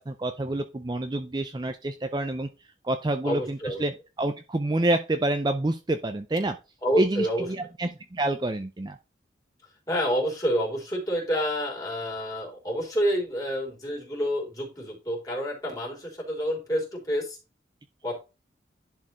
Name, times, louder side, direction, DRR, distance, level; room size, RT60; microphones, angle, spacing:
voice 1, 0.0-2.5 2.8-6.6 7.0-9.0, right 1 dB, 25° right, 8 dB, 0.5 m, -28 dB
voice 2, 3.2-3.8 6.8-7.5 9.9-17.4 18.0-18.2, equal, 20° left, -2 dB, 3.5 m, -28 dB
11.0 x 4.5 x 3.1 m, 0.28 s
head